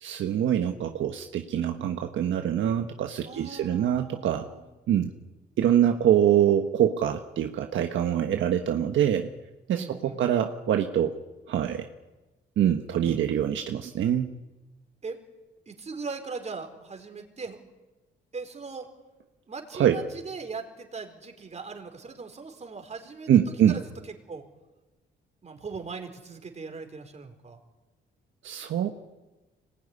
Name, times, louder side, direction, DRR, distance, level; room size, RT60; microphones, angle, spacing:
voice 1, 0.0-4.5 4.9-5.1 5.6-9.3 9.7-11.1 11.5-11.8 12.6-14.3 19.7-20.0 23.3-23.8 28.4-28.9, right 10 dB, 75° right, 5 dB, 1.5 m, -24 dB
voice 2, 3.2-4.6 9.7-10.2 13.0-13.2 15.0-15.2 15.7-17.6 18.3-18.9 19.5-24.4 25.4-27.6, right 4 dB, 35° right, 4 dB, 4.6 m, -39 dB
25.5 x 20.0 x 9.9 m, 1.1 s
cardioid pair, 90°, 20 cm